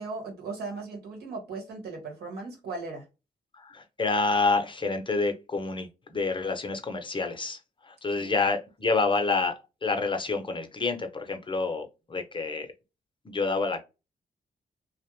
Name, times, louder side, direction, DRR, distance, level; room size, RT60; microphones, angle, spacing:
voice 1, 0.0-3.0 8.2-8.3, right 3 dB, 85° right, 1.1 m, -37 dB
voice 2, 3.6-7.6 7.9-9.5 9.8-12.7 13.3-13.8, left 3 dB, 30° left, 0.6 m, -28 dB
2.4 x 2.0 x 3.0 m
cardioid pair, 60°, 16 cm